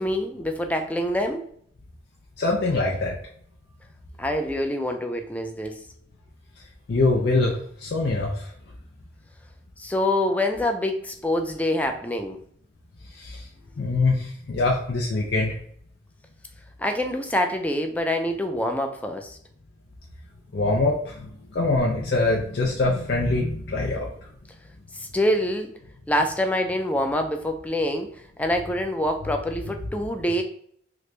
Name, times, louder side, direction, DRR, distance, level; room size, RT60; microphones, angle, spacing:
voice 1, 0.0-1.4 4.2-5.8 9.8-12.4 16.8-19.4 24.9-25.7 26.1-28.1 28.4-30.4, left 1 dB, 10° left, 5 dB, 0.3 m, -25 dB
voice 2, 2.4-3.2 6.9-8.5 13.2-13.4 13.8-15.6 20.5-24.1, left 2 dB, 75° left, -2 dB, 0.5 m, -24 dB
2.9 x 2.5 x 3.2 m, 0.63 s
head